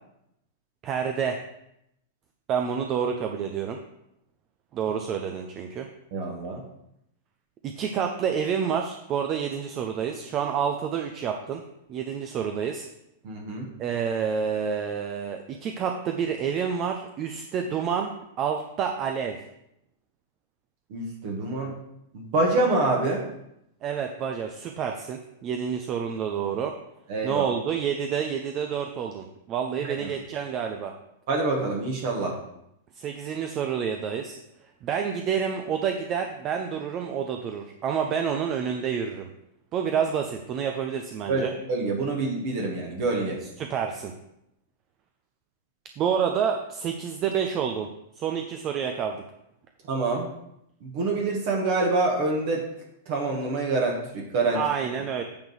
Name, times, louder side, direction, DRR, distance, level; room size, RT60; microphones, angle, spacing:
voice 1, 0.8-1.4 2.5-3.8 4.7-5.9 7.6-11.6 11.9-12.9 13.8-18.1 18.4-19.4 23.8-26.7 27.2-30.9 32.9-34.4 34.8-39.3 39.7-41.5 43.6-44.1 46.0-49.2 54.5-55.2, right 7 dB, 35° right, 4 dB, 0.7 m, -28 dB
voice 2, 6.1-6.6 13.2-13.7 20.9-21.8 22.1-23.3 27.1-27.5 29.8-30.1 31.3-32.4 41.3-41.4 41.7-43.4 49.9-50.3 50.8-52.7 53.1-54.6, right 3 dB, 50° right, -1 dB, 1.5 m, -26 dB
8.7 x 3.9 x 6.5 m, 0.81 s
figure-of-eight pair, 95°, 0 cm